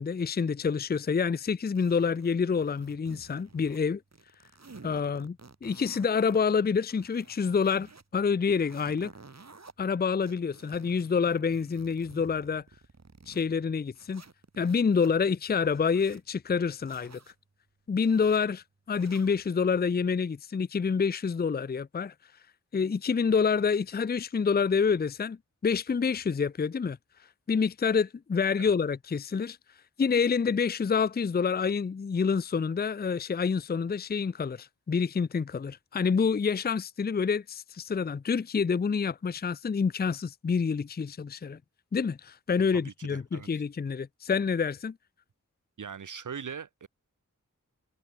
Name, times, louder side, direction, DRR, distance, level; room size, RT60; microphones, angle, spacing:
voice 1, 0.0-4.0 4.8-9.1 9.8-12.6 13.3-14.2 14.6-17.2 17.9-22.1 22.7-25.4 25.6-27.0 27.5-29.6 30.0-41.6 41.9-44.9, left 5 dB, 30° left, 0.5 m, -27 dB
sound 1, 1.8-3.8 4.1-6.4 6.8-8.0 8.4-9.7 10.2-13.5 13.9-15.1 15.6-16.2 16.8-17.3 17.9-18.4 18.9-19.4, right 3 dB, 55° right, 3.8 m, -52 dB
voice 2, 42.7-43.5 45.8-46.9, right 7 dB, 75° right, 0.8 m, -41 dB
wide cardioid pair, 50°, 31 cm